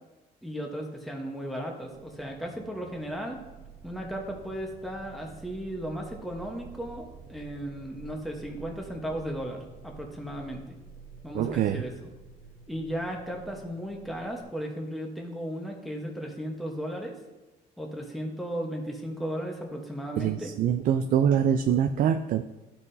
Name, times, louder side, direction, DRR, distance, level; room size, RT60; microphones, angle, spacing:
voice 1, 0.4-3.4 3.8-10.8 11.2-12.1 12.7-17.2 17.8-20.5, equal, ahead, 0 dB, 1.1 m, -35 dB
sound 1, 1.8-14.4, right 5 dB, 30° right, 1.1 m, -49 dB
voice 2, 11.3-11.8 20.2-22.4, right 9 dB, 55° right, 8 dB, 0.4 m, -24 dB
12.0 x 5.7 x 2.7 m, 1.1 s
cardioid pair, 110°, 17 cm